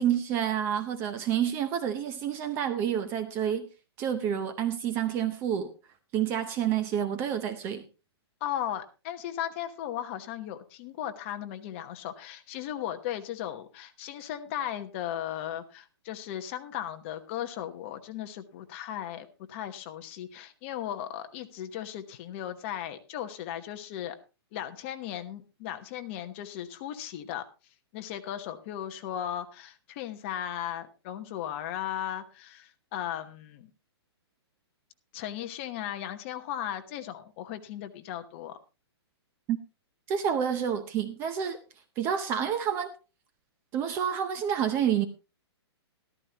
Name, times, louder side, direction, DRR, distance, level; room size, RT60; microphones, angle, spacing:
voice 1, 0.0-3.7 4.0-5.7 6.1-7.8 39.5-39.6 40.1-41.6 42.0-42.9 43.7-45.1, right 9 dB, 15° right, 10 dB, 0.6 m, -28 dB
voice 2, 8.4-24.2 24.5-27.4 27.9-33.7 35.1-38.6, left 11 dB, 30° left, 8 dB, 1.1 m, -36 dB
14.0 x 13.5 x 2.9 m, 0.30 s
hypercardioid pair, 170°, 14 cm